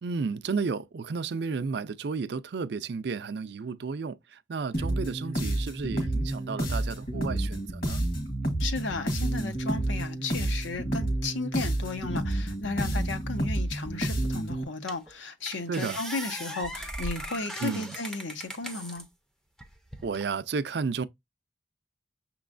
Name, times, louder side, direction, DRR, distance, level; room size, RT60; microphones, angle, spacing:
voice 1, 0.0-8.0 15.7-16.0 17.6-18.0 20.0-21.0, right 5 dB, 60° right, 0.4 m, -32 dB
sound 1, 4.7-14.6, right 1 dB, 50° left, 1.4 m, -30 dB
voice 2, 8.6-19.0, left 3 dB, 80° left, 0.8 m, -34 dB
sound 2, 14.3-14.4 14.9-15.1 15.5-19.1 19.6-20.3, right 1 dB, 5° left, 0.5 m, -38 dB
6.1 x 3.0 x 2.5 m
head